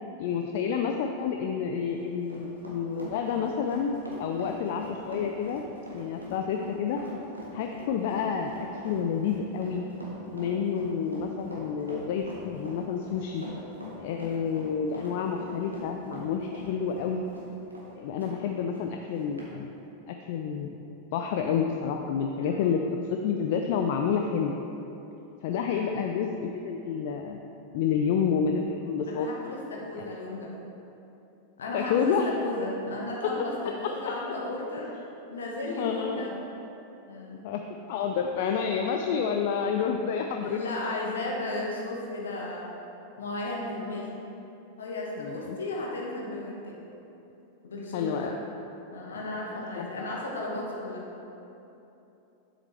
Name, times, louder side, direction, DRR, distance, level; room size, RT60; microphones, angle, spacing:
voice 1, 0.2-5.6 5.9-7.0 7.5-9.8 10.3-13.5 14.0-17.2 17.9-19.7 20.1-24.5 25.4-27.4 27.7-29.3 30.0-30.1 31.7-32.3 35.8-36.2 37.4-40.6 43.7-44.0 45.2-45.6 47.9-48.3 49.8-49.9, left 6 dB, 50° left, 4 dB, 0.4 m, -29 dB
Run, 1.7-18.4 18.7-18.9 19.4-19.5, left 1 dB, 80° right, 1.5 m, -42 dB
voice 2, 25.7-26.2 27.7-28.0 29.0-30.5 31.6-34.9 35.3-36.3 37.1-37.5 40.4-42.7 43.2-44.1 44.8-46.8 47.6-48.4 48.9-51.0, left 2 dB, 65° left, -2 dB, 1.4 m, -35 dB
8.9 x 7.5 x 3.3 m, 3.0 s
figure-of-eight pair, 90°, 0 cm